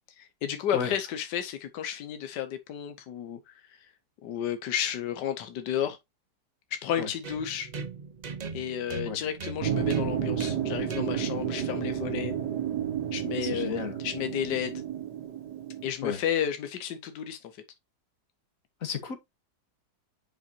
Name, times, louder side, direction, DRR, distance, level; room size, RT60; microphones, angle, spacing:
voice 1, 0.2-3.8 4.2-6.0 6.7-7.7 8.5-12.3 13.1-14.8 15.8-17.5, left 9 dB, 80° left, 1.5 m, -32 dB
sound 1, 7.2-15.0, right 4 dB, 55° right, 0.4 m, -41 dB
sound 2, 9.6-15.9, right 9 dB, 75° right, 1.9 m, -31 dB
voice 2, 13.4-14.0 16.0-16.2 18.8-19.2, left 6 dB, 55° left, 1.8 m, -33 dB
9.7 x 5.2 x 2.8 m
omnidirectional pair, 1.8 m